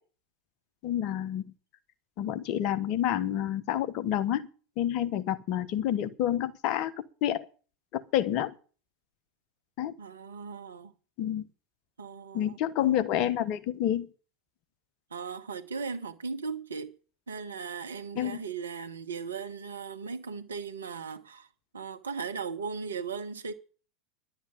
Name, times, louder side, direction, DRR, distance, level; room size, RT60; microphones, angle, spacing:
voice 1, 0.8-1.4 2.2-4.5 4.8-7.5 7.9-8.5 9.8-9.9 11.2-11.5 12.3-14.1 18.1-18.4, left 11 dB, 50° left, 1.2 m, -29 dB
voice 2, 10.0-10.9 12.0-12.6 15.1-16.9 17.3-21.5 21.7-23.5, right 5 dB, 75° right, 1.3 m, -37 dB
11.0 x 8.0 x 8.4 m
figure-of-eight pair, 80°, 0 cm